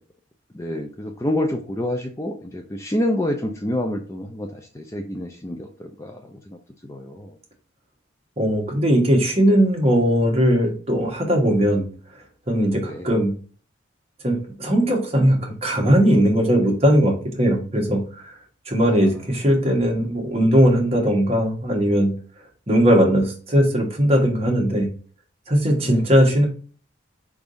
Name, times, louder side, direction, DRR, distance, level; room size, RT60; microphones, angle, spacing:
voice 1, 0.5-7.4 12.8-13.1 18.8-19.1 25.8-26.1, left 1 dB, 15° left, 3 dB, 0.4 m, -28 dB
voice 2, 8.4-11.9 12.5-13.3 14.2-18.3 18.7-22.1 22.7-24.9 25.5-26.5, equal, 30° right, 0 dB, 1.2 m, -19 dB
4.6 x 3.5 x 2.5 m, 0.41 s
head